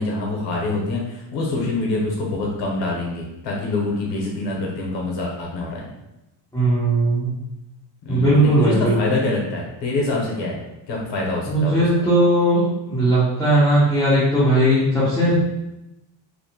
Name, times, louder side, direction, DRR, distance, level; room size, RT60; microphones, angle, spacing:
voice 1, 0.0-5.9 8.0-10.6 10.9-11.9 15.1-15.4, left 2 dB, 65° left, -2 dB, 0.7 m, -25 dB
voice 2, 6.5-7.3 8.1-9.0 11.5-15.4, right 1 dB, 10° left, -10 dB, 0.3 m, -18 dB
2.6 x 2.0 x 2.7 m, 0.94 s
cardioid pair, 170°, 47 cm